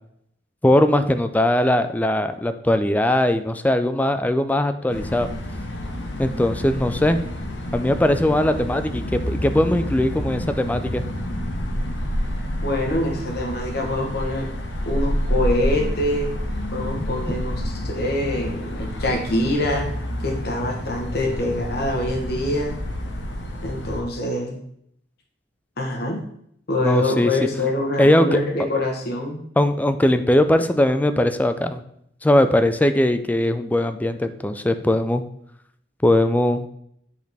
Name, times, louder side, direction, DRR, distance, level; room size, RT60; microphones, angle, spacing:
voice 1, 0.6-5.3 6.2-7.2 7.7-11.0 17.0-17.1 26.8-27.3 28.0-28.4 29.6-31.8 32.2-35.2 36.0-36.7, left 1 dB, 10° left, 9 dB, 0.4 m, -20 dB
sound 1, 4.9-24.0, equal, 85° left, 1.1 m, -28 dB
voice 2, 12.6-14.5 14.8-16.3 16.7-19.9 20.2-22.8 23.6-24.6 25.8-26.2 26.7-29.4, left 1 dB, 60° left, 1 dB, 1.1 m, -25 dB
8.6 x 4.1 x 3.4 m, 0.70 s
head